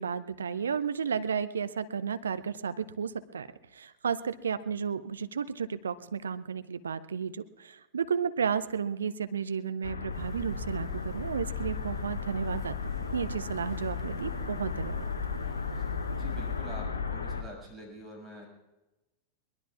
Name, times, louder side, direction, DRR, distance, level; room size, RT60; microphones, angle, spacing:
voice 1, 0.0-3.5 3.7-12.8 13.1-15.0, right 6 dB, 70° right, 13 dB, 0.6 m, -33 dB
sound 1, 9.8-17.4, left 5 dB, 75° left, 1.0 m, -35 dB
sound 2, 10.1-16.8, right 1 dB, 20° right, 2.5 m, -45 dB
voice 2, 16.2-18.5, equal, 5° right, -3 dB, 6.5 m, -45 dB
22.5 x 20.5 x 2.4 m, 1.0 s
figure-of-eight pair, 90°, 0 cm